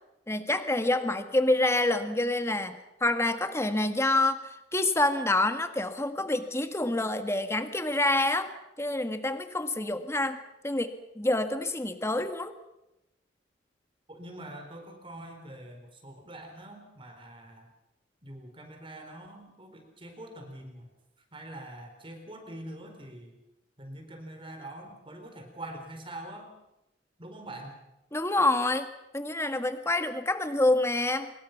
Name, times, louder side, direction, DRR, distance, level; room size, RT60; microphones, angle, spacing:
voice 1, 0.3-8.5 8.8-10.4 10.6-12.5 28.1-28.9 29.1-31.3, left 2 dB, 15° left, 8 dB, 1.6 m, -27 dB
voice 2, 14.1-17.7 18.2-20.9 21.3-23.3 23.8-26.5 27.2-27.8, right 1 dB, 30° right, 4 dB, 4.3 m, -44 dB
25.0 x 23.0 x 5.9 m, 0.91 s
head